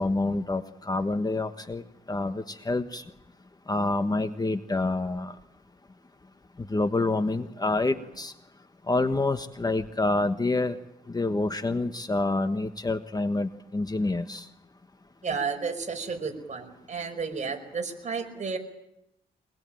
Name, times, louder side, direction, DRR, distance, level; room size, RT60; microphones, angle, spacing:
voice 1, 0.0-3.0 3.7-5.3 6.6-8.3 8.9-10.8 11.1-14.5, left 2 dB, 20° left, 9 dB, 1.3 m, -27 dB
voice 2, 15.2-18.6, right 5 dB, 45° right, 5 dB, 5.3 m, -32 dB
24.5 x 21.0 x 9.1 m, 0.83 s
cardioid pair, 100°, 17 cm